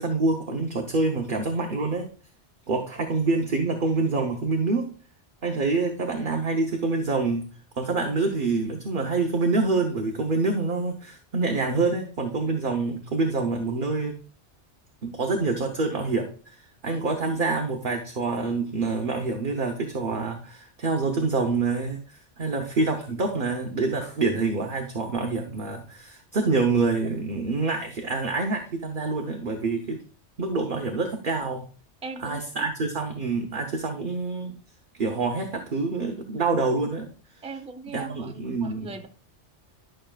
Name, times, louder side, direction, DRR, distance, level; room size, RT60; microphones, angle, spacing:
voice 1, 0.0-2.1 2.7-4.9 5.4-7.4 7.8-14.1 15.0-30.0 30.4-31.6 32.2-34.5 35.0-37.1 37.9-39.0, right 3 dB, 50° right, 1.0 m, -26 dB
voice 2, 32.0-32.6 37.4-39.1, right 4 dB, 5° right, 0.5 m, -40 dB
11.0 x 6.2 x 2.4 m
omnidirectional pair, 1.2 m